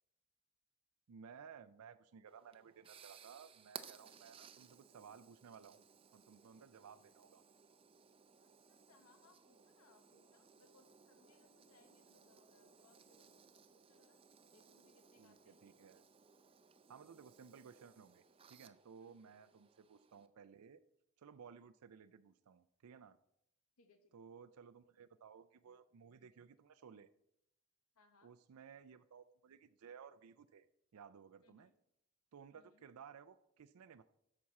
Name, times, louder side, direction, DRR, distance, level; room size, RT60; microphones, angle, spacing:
voice 1, 1.1-7.4 15.2-16.0 16.9-20.8 21.2-23.2 24.1-27.1 28.2-30.7 30.9-31.7 32.3-34.0, right 6 dB, 85° right, 12 dB, 0.4 m, -58 dB
sound 1, 2.3-20.3, right 7 dB, 25° right, 0.4 m, -61 dB
voice 2, 8.4-14.2 14.5-15.6 19.0-19.5 23.8-24.3 27.9-28.3 31.4-31.7 32.5-32.8, left 3 dB, 85° left, 6 dB, 1.1 m, -71 dB
13.5 x 6.0 x 4.2 m, 0.78 s
head